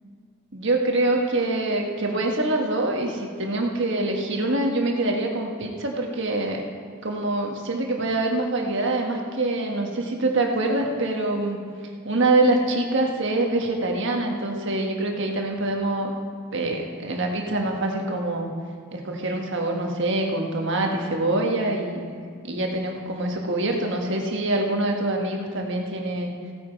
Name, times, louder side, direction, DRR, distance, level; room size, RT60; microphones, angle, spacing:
voice 1, 0.5-6.6 7.0-11.6 12.0-16.1 16.5-18.5 18.9-22.0 22.4-26.3, right 2 dB, 60° right, 1 dB, 1.5 m, -25 dB
16.0 x 8.5 x 4.6 m, 2.1 s
head